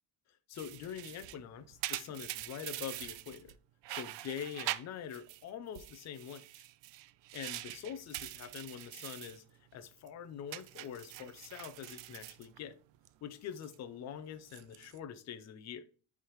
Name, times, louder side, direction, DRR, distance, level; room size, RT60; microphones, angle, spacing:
voice 1, 0.5-3.6 3.9-6.4 7.3-9.4 9.7-12.8 13.2-15.8, left 8 dB, 40° left, 0.5 m, -44 dB
sound 1, 0.5-3.5 3.8-5.4 5.7-9.4 9.7-10.1 10.5-13.1 13.4-13.8 14.4-15.0, right 16 dB, 85° right, 0.5 m, -44 dB
10.0 x 3.5 x 3.0 m
cardioid pair, 165°, 43 cm